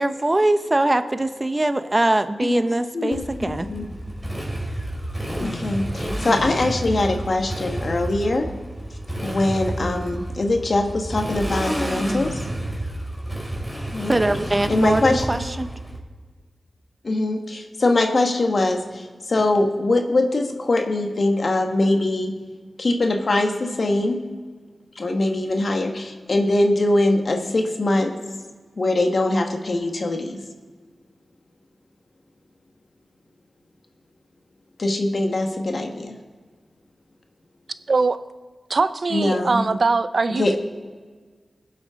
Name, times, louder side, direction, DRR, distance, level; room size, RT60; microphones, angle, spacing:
voice 1, 0.0-3.7 14.1-15.7, right 1 dB, 30° right, 10 dB, 0.9 m, -22 dB
voice 2, 2.9-3.9 5.4-8.5 9.2-12.4 13.9-14.2 14.7-15.3 17.0-22.3 22.8-24.2 24.9-28.1 28.8-30.4 34.8-36.1 39.1-39.6 40.3-40.6, left 2 dB, 65° left, 3 dB, 1.6 m, -22 dB
Motorcycle, 3.1-16.0, right 1 dB, 10° right, 3.4 m, -30 dB
voice 3, 38.7-40.5, right 3 dB, 65° right, 13 dB, 0.6 m, -21 dB
21.5 x 7.5 x 3.8 m, 1.5 s
cardioid pair, 40°, 0 cm